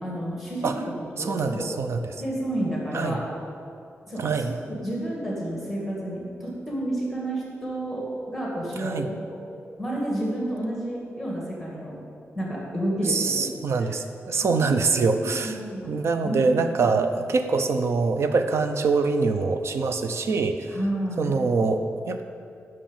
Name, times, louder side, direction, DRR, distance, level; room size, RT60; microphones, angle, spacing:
voice 1, 0.0-1.7 2.2-3.2 4.1-9.1 9.8-12.0 12.3-13.5 13.8-13.9 14.4-14.7 15.1-15.9 16.2-17.1 20.7-21.3, right 1 dB, ahead, -4 dB, 2.2 m, -30 dB
voice 2, 1.2-2.0 2.9-3.2 4.2-4.5 8.8-9.1 13.1-15.6 15.9-20.8 21.2-22.2, right 4 dB, 65° right, 7 dB, 0.7 m, -24 dB
10.0 x 6.1 x 7.4 m, 2.5 s
wide cardioid pair, 150°, 5 cm